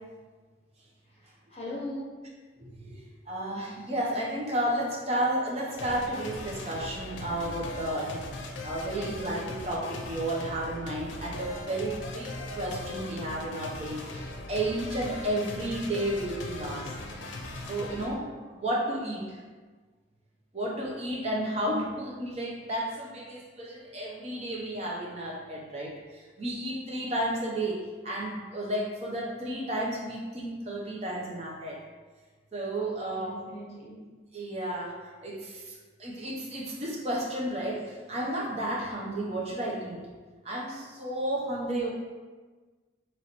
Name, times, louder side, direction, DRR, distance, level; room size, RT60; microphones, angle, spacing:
voice 1, 1.5-2.1 8.8-9.4 18.9-19.3 21.3-21.4 33.1-33.9, left 1 dB, 35° left, -5 dB, 1.0 m, -40 dB
voice 2, 2.6-8.3 8.6-16.9 17.7-19.4 20.5-27.8 28.0-31.8 32.5-33.4 34.3-40.0 40.4-41.9, right 1 dB, 35° right, -3 dB, 0.7 m, -32 dB
sound 1, 5.8-18.1, left 2 dB, 80° left, 0.5 m, -39 dB
3.0 x 3.0 x 4.2 m, 1.4 s
head